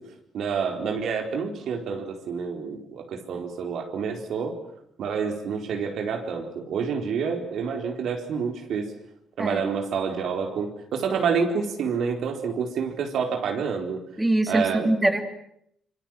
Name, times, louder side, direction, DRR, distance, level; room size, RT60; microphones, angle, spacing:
voice 1, 0.3-4.6 5.0-8.9 9.4-14.0 14.5-14.9, right 6 dB, 70° right, 4 dB, 4.3 m, -28 dB
voice 2, 14.2-15.2, right 1 dB, 10° right, 5 dB, 3.0 m, -23 dB
26.5 x 24.5 x 7.6 m, 0.71 s
cardioid pair, 90°, 0 cm